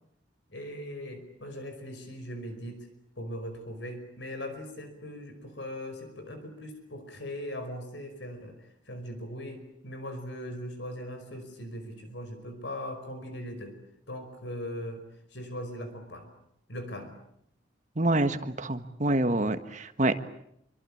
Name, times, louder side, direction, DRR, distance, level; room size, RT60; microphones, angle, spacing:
voice 1, 0.5-2.9 3.2-13.7 14.1-15.0 15.3-16.3 16.7-17.1, equal, 65° left, 8 dB, 5.2 m, -39 dB
voice 2, 18.0-20.2, right 2 dB, 40° right, 10 dB, 1.6 m, -26 dB
26.5 x 24.5 x 8.7 m, 0.74 s
head